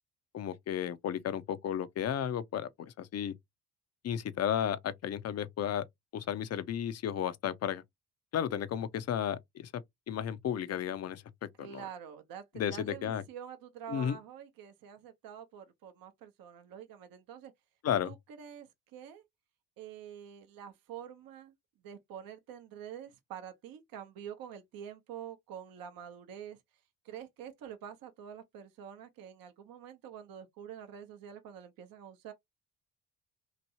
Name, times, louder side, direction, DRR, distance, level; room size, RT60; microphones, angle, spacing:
voice 1, 0.3-3.3 4.0-5.8 6.1-7.8 8.3-11.2 11.6-11.8 12.5-13.2 13.9-14.2 17.8-18.1, left 9 dB, 40° left, 0.5 m, -33 dB
voice 2, 11.6-17.5 18.0-19.2 19.8-21.5 21.8-26.6 27.0-32.3, right 9 dB, 55° right, 0.7 m, -47 dB
3.0 x 2.6 x 2.7 m
hypercardioid pair, 50°, 42 cm